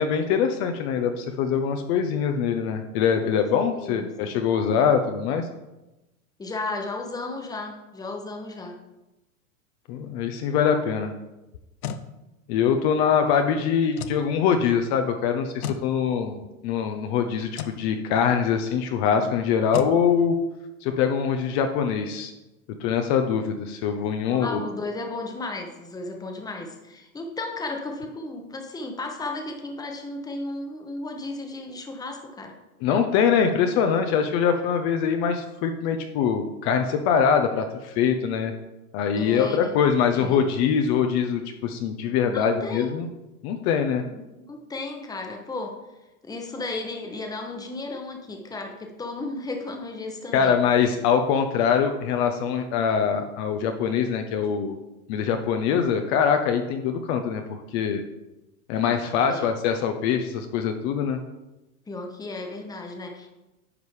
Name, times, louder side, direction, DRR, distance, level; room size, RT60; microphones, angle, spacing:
voice 1, 0.0-5.5 9.9-11.1 12.5-16.4 16.6-20.4 20.8-22.3 22.8-24.6 32.8-38.5 38.9-43.1 43.4-44.0 50.3-54.8 55.1-58.0 58.7-61.2, left 7 dB, 45° left, 6 dB, 0.7 m, -23 dB
voice 2, 3.7-4.4 6.4-8.8 24.2-32.5 39.2-39.7 40.1-40.4 42.3-42.9 44.0-44.1 44.5-45.8 46.2-50.6 59.3-59.5 61.9-63.3, left 2 dB, 10° left, 3 dB, 1.0 m, -34 dB
sound 1, 11.5-12.1 13.9-14.2 15.6-15.9 17.5-17.8 19.7-20.0, left 8 dB, 80° left, 0.7 m, -32 dB
9.7 x 5.3 x 3.2 m, 1.0 s
hypercardioid pair, 110°, 43 cm